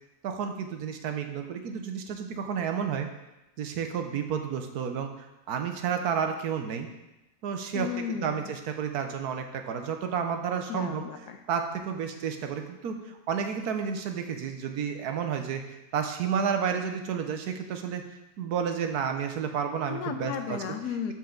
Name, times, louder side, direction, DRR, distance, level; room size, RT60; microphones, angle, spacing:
voice 1, 0.2-3.1 3.6-5.1 5.5-6.9 7.4-7.9 8.2-11.0 11.5-13.0 13.3-15.6 15.9-18.0 18.4-20.6, right 7 dB, 80° right, 5 dB, 1.3 m, -31 dB
voice 2, 7.7-8.5 10.7-11.4 19.9-21.1, left 7 dB, 85° left, 7 dB, 1.3 m, -34 dB
12.5 x 4.5 x 3.8 m, 0.95 s
omnidirectional pair, 1.7 m